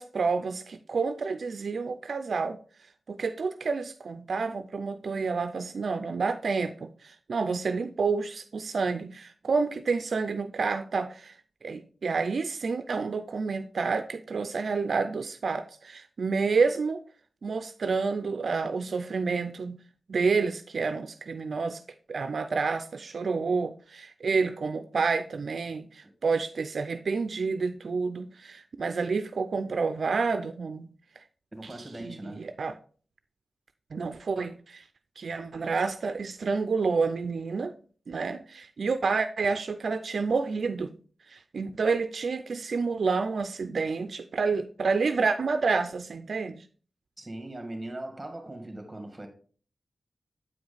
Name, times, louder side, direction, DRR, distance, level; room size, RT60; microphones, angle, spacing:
voice 1, 0.0-2.6 3.1-11.3 11.6-17.0 17.4-19.8 20.1-21.8 22.1-30.9 32.0-32.8 33.9-34.8 35.2-37.7 38.1-40.9 41.3-46.6, right 4 dB, 70° right, 0.4 m, -29 dB
voice 2, 31.5-32.5 47.2-49.3, right 1 dB, 15° right, 2.1 m, -40 dB
8.6 x 4.9 x 4.0 m
wide cardioid pair, 85°, 0 cm